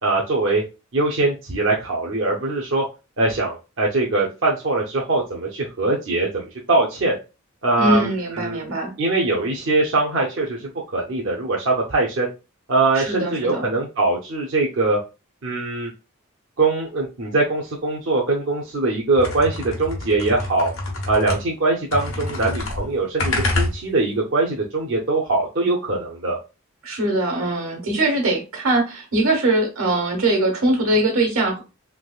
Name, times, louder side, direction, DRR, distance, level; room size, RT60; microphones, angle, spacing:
voice 1, 0.0-0.6 0.9-2.8 3.2-7.2 7.6-8.6 9.0-12.3 12.7-15.0 15.4-15.9 16.6-20.7 21.1-26.4, right 2 dB, 60° right, -3 dB, 0.6 m, -22 dB
voice 2, 7.8-8.9 12.9-13.7 26.8-31.6, right 2 dB, 85° right, 2 dB, 1.4 m, -21 dB
sound 1, 19.2-21.6 21.9-24.2, left 2 dB, 85° left, 1.1 m, -27 dB
3.3 x 3.0 x 2.3 m, 0.29 s
head